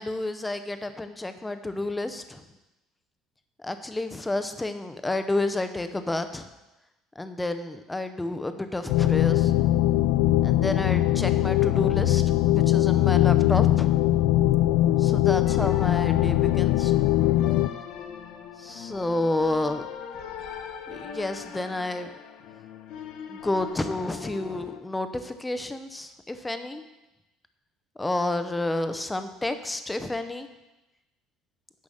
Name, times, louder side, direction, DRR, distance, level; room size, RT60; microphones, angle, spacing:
voice 1, 0.0-2.4 3.6-6.5 7.2-9.5 10.4-13.9 15.0-16.9 18.6-19.8 20.9-22.1 23.3-26.8 28.0-30.5, left 2 dB, 10° left, 9 dB, 0.6 m, -30 dB
sound 1, 8.9-17.7, left 14 dB, 75° left, 0.3 m, -21 dB
sound 2, 15.4-24.8, left 8 dB, 55° left, 0.8 m, -40 dB
9.7 x 5.6 x 6.4 m, 0.99 s
cardioid pair, 170°, 0 cm